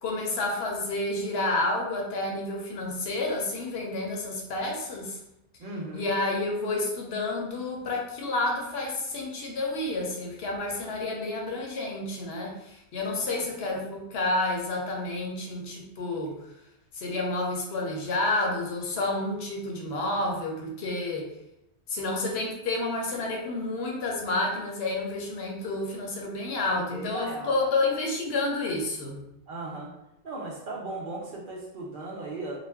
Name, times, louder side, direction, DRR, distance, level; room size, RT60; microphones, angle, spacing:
voice 1, 0.0-5.2 5.9-16.3 16.9-21.3 21.9-29.2, left 2 dB, 65° left, 0 dB, 0.8 m, -30 dB
voice 2, 5.6-6.1 13.3-13.5 26.6-27.6 29.5-29.9 30.2-32.6, right 2 dB, 55° right, -2 dB, 0.6 m, -37 dB
2.4 x 2.1 x 3.3 m, 0.85 s
omnidirectional pair, 1.2 m